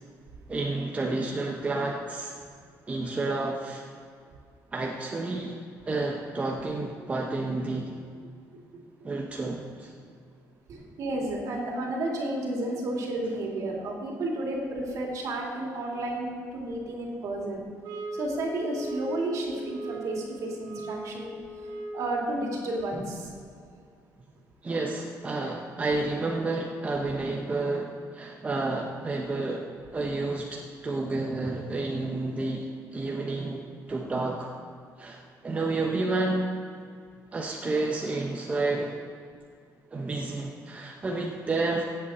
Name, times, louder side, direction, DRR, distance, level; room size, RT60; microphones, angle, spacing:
voice 1, 0.5-2.3 2.9-3.8 4.7-5.6 5.9-7.9 9.0-9.9 24.6-33.6 33.9-34.5 35.0-36.5 37.3-39.0 39.9-41.8, right 2 dB, 20° right, -1 dB, 0.9 m, -30 dB
voice 2, 10.7-17.6 18.1-21.3 21.9-23.3, right 1 dB, 60° right, -1 dB, 2.6 m, -32 dB
sound 1, 17.8-22.2, right 1 dB, 90° right, 1.9 m, -39 dB
16.5 x 8.0 x 4.2 m, 2.2 s
cardioid pair, 140°, 6 cm